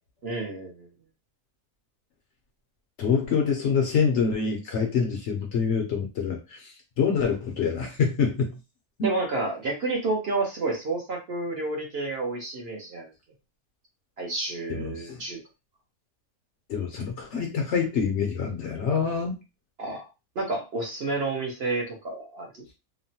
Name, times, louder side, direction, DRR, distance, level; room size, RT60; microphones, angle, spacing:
voice 1, 0.2-0.9 9.0-13.1 14.2-15.4 19.8-20.1 20.3-22.6, right 2 dB, 50° right, -1 dB, 0.9 m, -30 dB
voice 2, 3.0-8.5 9.0-9.1 14.7-15.2 16.7-19.4, left 6 dB, 65° left, 2 dB, 0.8 m, -26 dB
2.9 x 2.1 x 2.7 m, 0.27 s
omnidirectional pair, 1.5 m